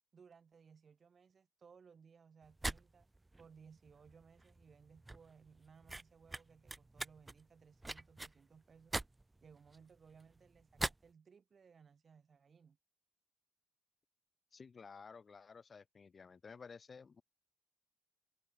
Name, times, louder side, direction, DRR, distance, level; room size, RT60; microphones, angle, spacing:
voice 1, 0.1-3.1 3.4-8.9 9.4-12.8, right 6 dB, 45° right, 5.1 m, -62 dB
sound 1, 2.4-11.1, right 2 dB, 15° right, 2.1 m, -44 dB
voice 2, 14.5-17.2, left 5 dB, 40° left, 4.1 m, -54 dB
supercardioid pair, 60°, 0 cm